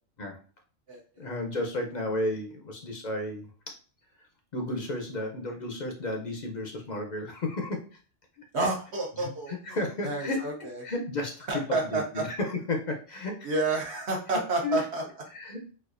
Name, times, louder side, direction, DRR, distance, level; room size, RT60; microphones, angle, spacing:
voice 1, 1.2-3.8 4.5-8.0 8.4-8.5 9.2-11.6 11.9-13.5 14.6-14.8 15.3-15.6, left 2 dB, 50° left, 3 dB, 0.5 m, -33 dB
voice 2, 8.5-9.5 10.0-10.8 11.5-12.2 13.4-15.0, right 2 dB, 65° right, -1 dB, 1.0 m, -29 dB
4.2 x 2.3 x 2.4 m, 0.38 s
omnidirectional pair, 1.3 m